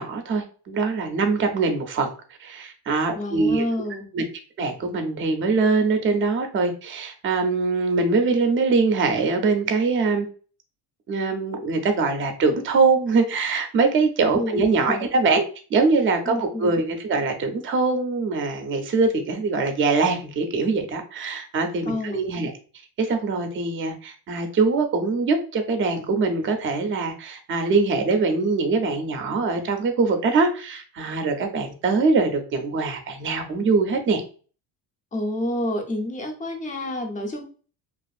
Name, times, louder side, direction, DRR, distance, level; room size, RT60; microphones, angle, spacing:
voice 1, 0.0-2.1 2.4-3.6 4.1-4.3 4.6-10.3 11.1-15.4 15.7-22.5 23.0-34.2, right 4 dB, 35° right, 6 dB, 0.5 m, -23 dB
voice 2, 3.1-4.1 14.3-15.1 16.3-16.8 21.8-22.2 35.1-37.4, left 1 dB, 20° left, 3 dB, 0.5 m, -28 dB
2.5 x 2.5 x 2.3 m, 0.39 s
cardioid pair, 135°, 38 cm